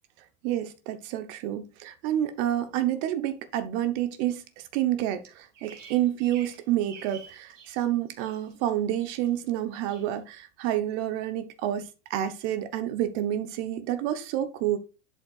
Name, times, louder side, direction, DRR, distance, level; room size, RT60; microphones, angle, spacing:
voice 1, 0.4-14.8, right 12 dB, 60° right, 1.0 m, -29 dB
Bird vocalization bird call bird song, 5.2-7.8 8.1-8.7 9.0-9.5 9.9-10.1, right 7 dB, 85° right, 2.8 m, -49 dB
11.0 x 5.4 x 2.4 m
hypercardioid pair, 105°, 36 cm